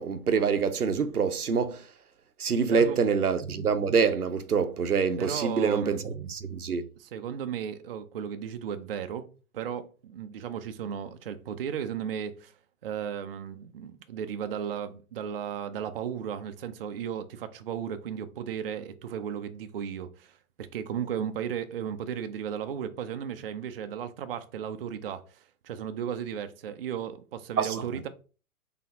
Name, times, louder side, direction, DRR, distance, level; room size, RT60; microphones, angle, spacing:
voice 1, 0.0-1.9 2.4-6.9 27.6-27.8, right 5 dB, 90° right, 0.7 m, -26 dB
voice 2, 2.7-3.0 5.2-6.0 7.0-9.3 9.5-12.5 12.8-28.1, right 8 dB, 45° right, 0.4 m, -35 dB
3.9 x 3.4 x 2.7 m
figure-of-eight pair, 120°, 44 cm